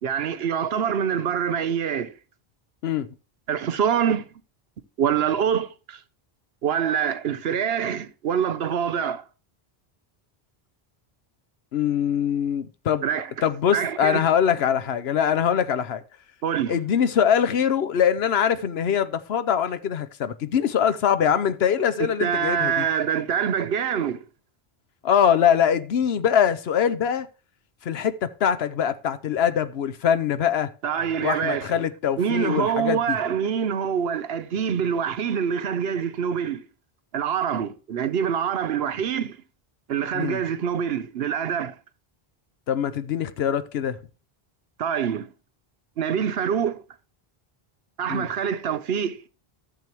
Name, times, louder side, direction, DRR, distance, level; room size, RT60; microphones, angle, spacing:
voice 1, 0.0-2.1 3.5-4.3 5.0-6.0 6.6-9.2 13.0-13.3 13.7-14.2 16.4-16.8 22.0-24.2 30.8-31.8 32.2-36.7 37.1-39.4 39.9-41.8 44.8-45.3 46.0-46.8 48.0-49.2, right 8 dB, 75° right, 1.0 m, -25 dB
voice 2, 11.7-13.1 13.4-16.0 16.7-22.8 25.0-27.3 27.8-30.7 31.2-33.2 40.1-40.4 42.7-44.0 48.1-48.3, left 8 dB, 80° left, 1.0 m, -23 dB
14.0 x 7.0 x 3.0 m
omnidirectional pair, 1.0 m